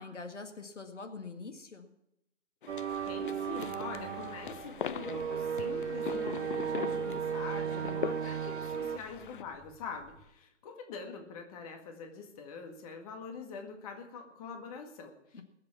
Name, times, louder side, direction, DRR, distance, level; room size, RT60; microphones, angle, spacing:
voice 1, 0.0-1.9 15.3-15.4, left 4 dB, 75° left, 6 dB, 1.9 m, -44 dB
sound 1, 2.6-9.4, left 8 dB, 45° left, 0.5 m, -42 dB
sound 2, 2.7-9.0, right 7 dB, 70° right, 0.6 m, -35 dB
sound 3, 2.9-10.3, equal, 15° right, 4.1 m, -60 dB
voice 2, 3.1-15.4, left 5 dB, 30° left, 4 dB, 1.9 m, -44 dB
20.5 x 7.7 x 5.9 m, 0.83 s
figure-of-eight pair, 130°, 36 cm